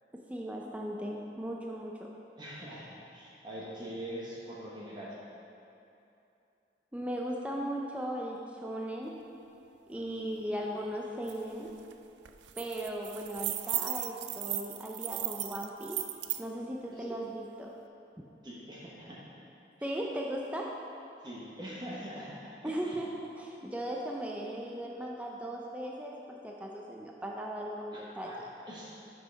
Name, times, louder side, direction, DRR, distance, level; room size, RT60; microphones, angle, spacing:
voice 1, 0.3-2.1 6.9-9.1 9.9-11.7 12.6-16.0 16.4-17.8 19.8-20.7 22.6-28.3, right 1 dB, 10° right, -1 dB, 0.4 m, -37 dB
voice 2, 2.4-5.1 9.9-10.3 17.0-17.1 18.4-19.2 19.8-19.9 21.2-22.9 27.9-28.4 28.7-28.9, equal, 25° right, -6 dB, 1.1 m, -43 dB
sound 1, 11.3-11.4 11.7-11.9 12.3-16.4, right 14 dB, 85° right, 0.4 m, -36 dB
7.5 x 5.6 x 5.2 m, 2.8 s
head